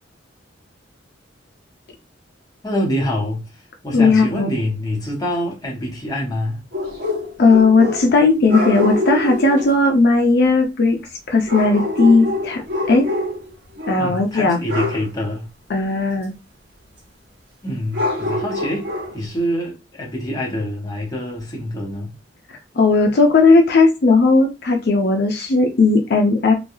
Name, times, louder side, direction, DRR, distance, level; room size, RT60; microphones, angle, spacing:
voice 1, 2.6-3.4 3.8-6.6 14.0-15.5 17.6-22.1, equal, 20° left, 0.9 m, -25 dB
voice 2, 3.9-4.5 7.4-11.0 11.3-13.1 13.9-14.6 15.7-16.3 22.8-26.5, left 3 dB, 60° left, 0.5 m, -16 dB
sound 1, 6.7-8.2 8.5-9.7 11.5-13.5 13.8-14.1 14.7-15.1 17.9-19.2, left 2 dB, 55° right, 1.3 m, -25 dB
3.2 x 2.2 x 2.6 m
head